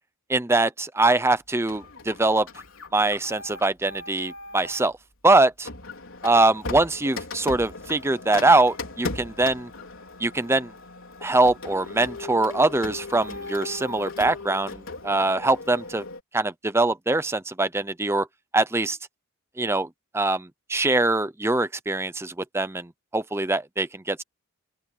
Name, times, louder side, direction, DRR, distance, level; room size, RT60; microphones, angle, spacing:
voice 1, 0.3-2.5 2.9-4.9 5.2-5.7 6.2-9.7 10.2-10.7 11.2-16.0 16.3-18.3 18.5-19.0 19.6-19.9 20.1-24.2, right 2 dB, 10° right, 0.6 m, -23 dB
Printer, 1.7-4.9 5.6-16.2, left 3 dB, 60° left, 5.0 m, -38 dB
open air
head